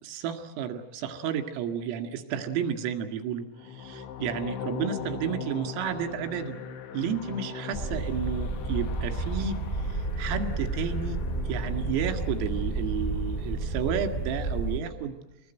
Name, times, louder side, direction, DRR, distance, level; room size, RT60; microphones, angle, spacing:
voice 1, 0.0-6.6 6.9-9.6 9.9-11.2 11.5-15.2, right 7 dB, 80° right, 6 dB, 4.6 m, -32 dB
sound 1, 3.5-13.7, left 7 dB, 70° left, 4.0 m, -40 dB
sound 2, 7.7-14.8, right 2 dB, 10° left, 2.1 m, -31 dB
26.0 x 20.5 x 9.1 m, 0.97 s
omnidirectional pair, 6.0 m